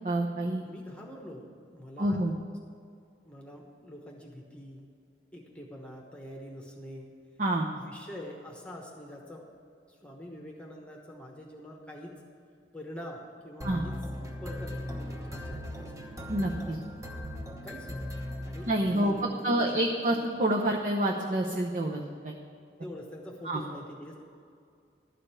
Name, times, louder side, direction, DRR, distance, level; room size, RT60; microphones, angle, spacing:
voice 1, 0.0-0.6 2.0-2.3 7.4-7.7 13.6-13.8 16.3-16.8 18.7-19.1 19.4-22.4 23.4-23.6, right 1 dB, 45° right, 0 dB, 0.8 m, -28 dB
voice 2, 0.6-1.5 1.7-2.2 3.2-4.9 5.3-7.1 7.7-9.5 9.9-12.2 12.7-15.9 17.6-20.2 22.8-24.2, left 1 dB, 5° left, 0 dB, 1.1 m, -45 dB
sound 1, 13.6-19.3, left 1 dB, 15° right, 1.0 m, -38 dB
12.5 x 5.1 x 8.8 m, 2.3 s
head